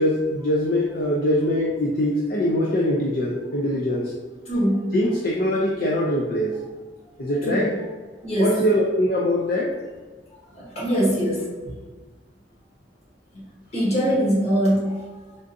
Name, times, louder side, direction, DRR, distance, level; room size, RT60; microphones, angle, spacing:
voice 1, 0.0-4.1 4.9-6.5 7.2-7.7 8.4-9.7, left 1 dB, 55° left, -3 dB, 0.4 m, -22 dB
voice 2, 4.5-5.0 7.4-7.7 8.2-8.6 10.5-11.5 13.7-15.2, equal, 35° left, -7 dB, 1.4 m, -22 dB
3.6 x 2.5 x 2.6 m, 1.4 s
head